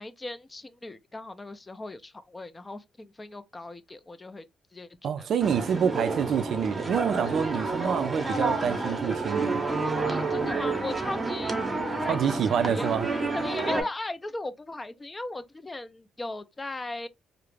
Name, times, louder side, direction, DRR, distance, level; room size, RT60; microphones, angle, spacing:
voice 1, 0.0-4.4 4.7-5.3 7.8-8.0 10.1-11.5 12.0-12.9 13.3-17.1, left 2 dB, 20° left, 0.4 m, -38 dB
voice 2, 5.0-9.6 12.1-13.1, right 8 dB, 65° right, 0.3 m, -27 dB
sound 1, 5.4-13.8, right 3 dB, 25° right, 0.7 m, -29 dB
2.4 x 2.0 x 3.1 m
cardioid pair, 90°, 0 cm